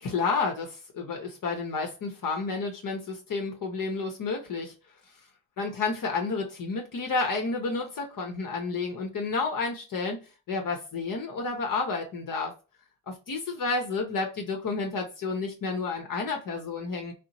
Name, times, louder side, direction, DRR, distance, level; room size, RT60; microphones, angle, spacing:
voice 1, 0.0-4.7 5.6-12.5 13.1-17.1, left 4 dB, 40° left, 3 dB, 0.8 m, -31 dB
2.8 x 2.1 x 2.7 m, 0.32 s
supercardioid pair, 65°, 49 cm